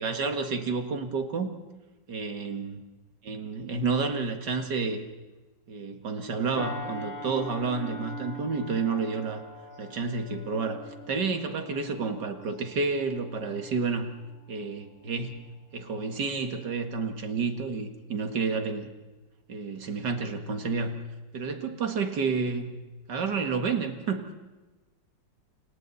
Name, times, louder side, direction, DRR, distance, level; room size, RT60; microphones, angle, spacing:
voice 1, 0.0-1.5 2.1-2.8 3.2-5.0 5.7-9.4 9.8-14.1 14.5-15.5 15.7-18.9 19.5-21.0 21.3-22.8 23.1-24.3, right 4 dB, 65° right, 6 dB, 2.5 m, -30 dB
sound 1, 6.6-15.4 15.9-16.1, equal, 60° left, 4.1 m, -43 dB
29.5 x 26.5 x 4.2 m, 1.2 s
omnidirectional pair, 2.0 m